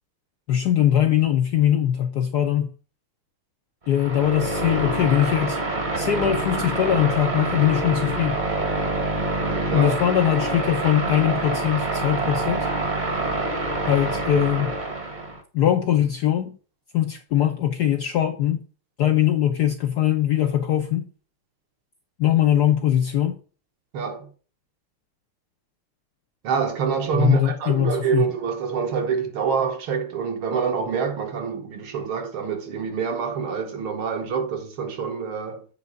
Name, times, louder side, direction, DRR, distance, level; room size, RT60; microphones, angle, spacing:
voice 1, 0.5-2.7 3.9-5.6 6.0-8.4 9.7-12.7 13.9-14.8 15.5-16.6 16.9-18.6 19.0-21.1 22.2-23.4 27.1-28.3, left 11 dB, 75° left, 0.9 m, -21 dB
sound 1, 3.9-15.4, right 2 dB, 30° right, 0.9 m, -26 dB
voice 2, 9.4-10.0 23.9-24.3 26.4-35.7, right 6 dB, 70° right, 2.0 m, -26 dB
8.2 x 3.6 x 6.3 m
omnidirectional pair, 2.4 m